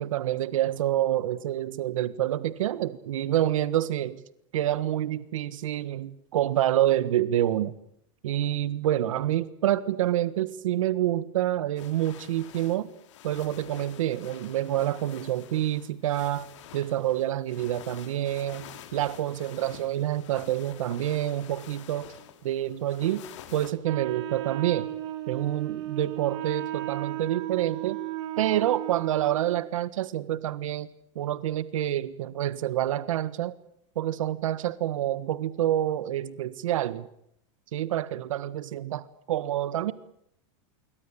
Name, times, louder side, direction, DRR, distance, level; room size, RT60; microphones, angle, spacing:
voice 1, 0.0-4.2 4.5-7.7 8.2-12.9 13.2-16.5 16.7-22.1 22.4-23.2 23.5-24.9 25.3-28.0 28.4-30.9 31.1-33.5 33.9-37.1 37.7-39.9, right 12 dB, 85° right, 16 dB, 1.5 m, -27 dB
sound 1, 11.8-23.7, left 11 dB, 65° left, 3.8 m, -48 dB
Wind instrument woodwind instrument, 23.8-29.7, right 15 dB, 60° right, 3.3 m, -35 dB
26.0 x 24.0 x 8.5 m, 0.72 s
supercardioid pair, 165°, 16 cm